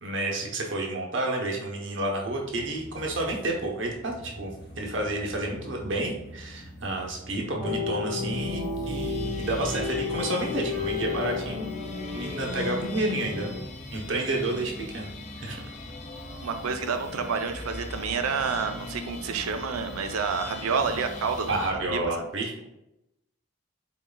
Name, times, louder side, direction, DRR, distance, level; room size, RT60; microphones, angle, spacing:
voice 1, 0.0-11.7 12.1-13.5 13.9-15.1 15.4-15.6 21.5-22.5, right 2 dB, 60° right, 0 dB, 0.9 m, -30 dB
sound 1, 2.2-22.1, equal, 55° left, 0.9 m, -43 dB
sound 2, 7.6-13.6, left 4 dB, 5° left, 1.2 m, -32 dB
sound 3, 8.5-21.7, left 4 dB, 35° left, 0.4 m, -44 dB
voice 2, 16.4-21.6 21.9-22.0, right 5 dB, 90° right, 7 dB, 0.5 m, -29 dB
4.3 x 3.9 x 2.2 m, 0.90 s
head